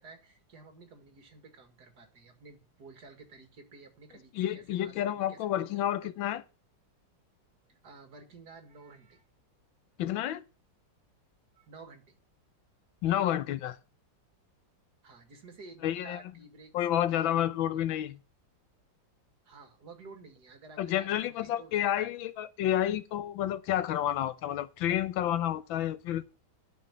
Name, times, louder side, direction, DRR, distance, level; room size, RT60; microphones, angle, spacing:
voice 1, 0.0-6.3 7.7-9.2 11.6-12.2 15.0-16.7 17.2-17.4 17.7-18.0 19.4-21.9, right 3 dB, 55° right, 2.4 m, -52 dB
voice 2, 4.3-6.4 10.0-10.4 13.0-13.8 15.8-16.2 16.7-18.2 20.8-26.2, left 11 dB, 85° left, 1.5 m, -30 dB
11.5 x 5.5 x 7.2 m
omnidirectional pair, 2.1 m